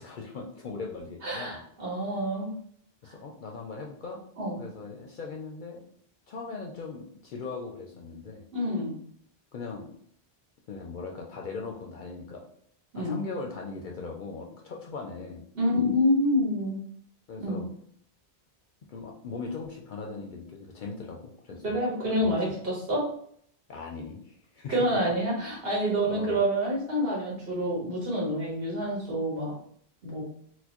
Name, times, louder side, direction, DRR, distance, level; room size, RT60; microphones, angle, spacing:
voice 1, 0.0-1.6 3.0-4.2 4.6-5.8 6.3-8.4 9.5-9.9 10.7-12.4 13.0-15.4 17.3-17.7 18.9-21.8 22.1-22.6 23.7-24.9 26.0-26.4, left 4 dB, 60° left, 1 dB, 0.6 m, -39 dB
voice 2, 1.2-2.5 4.4-4.6 8.5-8.9 12.9-13.1 15.5-16.8 17.4-17.6 21.6-23.1 24.7-29.5 30.0-30.2, equal, 65° right, -4 dB, 1.5 m, -27 dB
4.3 x 2.0 x 2.9 m, 0.64 s
omnidirectional pair, 1.1 m